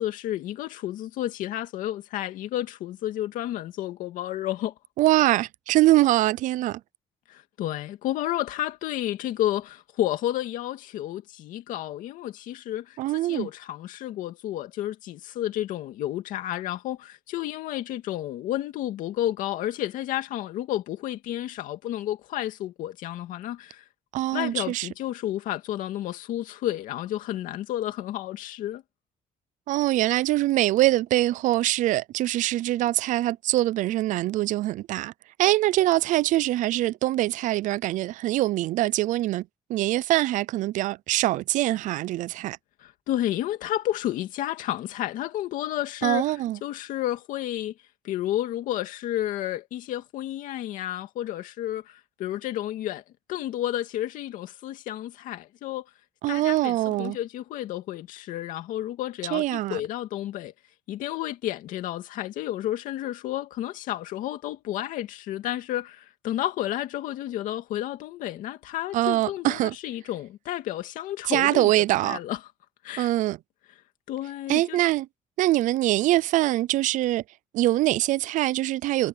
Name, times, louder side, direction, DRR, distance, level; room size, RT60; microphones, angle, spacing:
voice 1, 0.0-4.7 7.3-23.8 24.3-28.8 42.8-47.7 48.0-53.0 53.3-55.9 56.3-60.5 60.9-71.7 72.0-72.4 72.8-73.1 74.1-74.8, left 13 dB, 85° left, 2.3 m, -31 dB
voice 2, 5.0-6.8 13.0-13.5 24.1-24.9 29.7-35.1 35.4-39.4 39.7-42.6 46.0-46.6 56.2-57.2 59.3-59.8 68.9-69.7 71.3-72.2 73.0-73.4 74.5-75.1 75.4-77.2 77.5-79.1, right 16 dB, 75° right, 0.5 m, -23 dB
cardioid pair, 135°, 13 cm